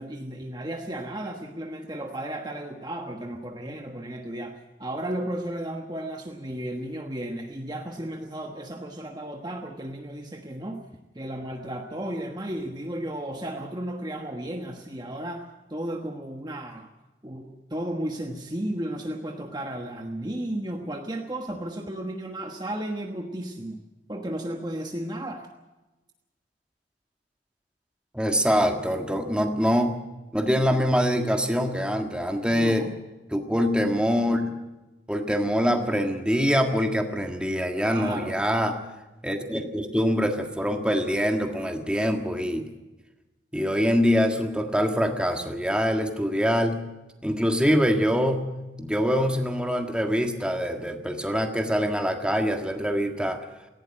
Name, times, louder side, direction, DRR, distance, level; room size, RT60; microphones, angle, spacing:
voice 1, 0.0-10.8 11.1-16.9 17.2-23.8 24.1-25.5 32.5-32.9 37.8-38.4, right 1 dB, 20° right, 3 dB, 1.2 m, -34 dB
voice 2, 28.1-30.0 30.3-32.9 33.3-34.5 35.1-38.8 39.2-42.7 43.5-46.8 47.2-53.4, equal, 5° right, 4 dB, 1.6 m, -24 dB
18.5 x 16.0 x 8.7 m, 1.1 s
head